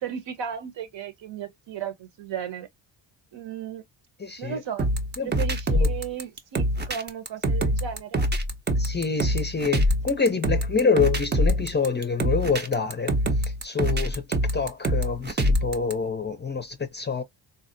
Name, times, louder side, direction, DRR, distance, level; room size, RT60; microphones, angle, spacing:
voice 1, 0.0-2.7 3.3-3.8 4.4-4.9 5.2-8.3, right 8 dB, 65° right, 1.0 m, -35 dB
voice 2, 4.2-4.6 5.2-5.3 5.7-5.9 8.8-13.1 13.6-14.2 14.5-17.2, left 5 dB, 20° left, 0.5 m, -26 dB
sound 1, 4.8-15.9, equal, 20° right, 0.6 m, -24 dB
3.9 x 2.0 x 2.5 m
cardioid pair, 95°, 48 cm